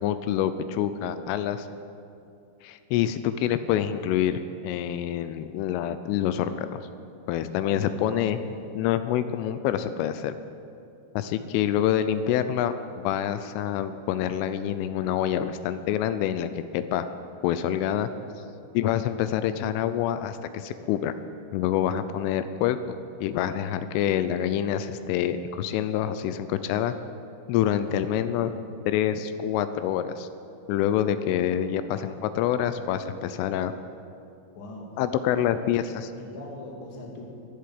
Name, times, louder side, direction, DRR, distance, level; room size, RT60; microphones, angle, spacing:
voice 1, 0.0-1.7 2.6-6.8 7.3-8.4 8.8-10.3 11.1-17.1 17.4-18.1 18.7-21.1 21.5-27.0 27.5-28.5 28.9-30.3 30.7-33.7 35.0-36.1, left 10 dB, 85° left, 11 dB, 3.1 m, -26 dB
voice 2, 7.7-8.6 27.7-28.5 34.5-34.9 35.4-35.6 36.2-37.2, left 1 dB, 50° left, 0 dB, 1.6 m, -41 dB
14.0 x 11.5 x 8.6 m, 2.6 s
omnidirectional pair, 5.8 m